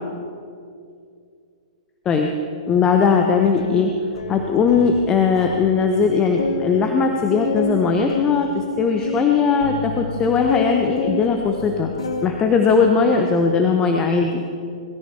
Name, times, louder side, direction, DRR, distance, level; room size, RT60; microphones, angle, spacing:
voice 1, 2.7-3.9 4.3-11.9 12.2-14.4, left 5 dB, 20° left, 4 dB, 1.1 m, -19 dB
sound 1, 3.3-5.7 6.0-6.1 6.4-12.4 12.7-13.2, left 3 dB, 65° left, 1.4 m, -29 dB
20.5 x 14.0 x 4.9 m, 2.4 s
figure-of-eight pair, 105°, 3 cm